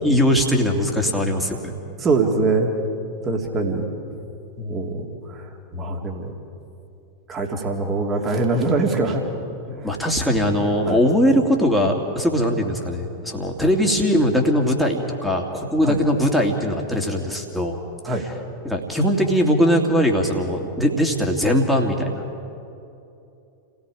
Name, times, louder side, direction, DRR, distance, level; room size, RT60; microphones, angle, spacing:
voice 1, 0.0-1.7 9.8-17.8 18.6-22.2, equal, ahead, 0 dB, 2.6 m, -20 dB
voice 2, 2.0-2.7 3.2-3.8 4.6-6.3 7.3-9.3 9.7-10.0 10.9-11.0 13.6-13.7 15.8-16.0 18.0-18.3, right 3 dB, 25° right, 2 dB, 2.8 m, -23 dB
30.0 x 17.5 x 5.0 m, 2.7 s
figure-of-eight pair, 90°, 0 cm